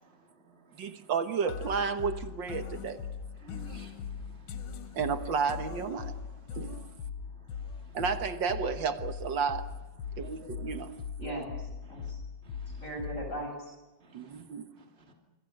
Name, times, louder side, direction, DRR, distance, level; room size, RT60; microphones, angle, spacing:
voice 1, 0.0-1.1 2.9-3.0 3.3-5.2 6.2-8.0 9.4-9.5 10.0-11.4 11.8-12.1 12.4-13.0 14.0-14.4 14.8-15.1, right 3 dB, 30° right, 3.3 m, -57 dB
voice 2, 0.7-3.1 4.9-6.2 6.5-6.8 7.9-9.7 10.2-10.9 11.2-11.4 14.1-14.7, right 6 dB, 70° right, 2.0 m, -32 dB
sound 1, 1.5-13.5, left 6 dB, 85° left, 1.9 m, -40 dB
voice 3, 11.2-12.2 12.8-13.8, right 1 dB, 40° left, 7.7 m, -39 dB
27.5 x 25.5 x 6.5 m
omnidirectional pair, 2.1 m